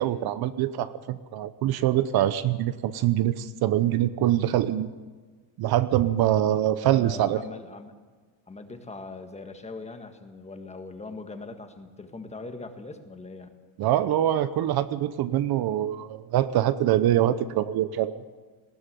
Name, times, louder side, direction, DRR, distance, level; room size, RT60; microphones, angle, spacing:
voice 1, 0.0-4.9 5.6-7.4 13.8-18.1, right 12 dB, 50° right, 14 dB, 0.9 m, -24 dB
voice 2, 6.8-7.9 8.5-13.5, left 3 dB, 15° left, 7 dB, 1.7 m, -41 dB
19.5 x 15.0 x 9.2 m, 1.4 s
cardioid pair, 135°, 47 cm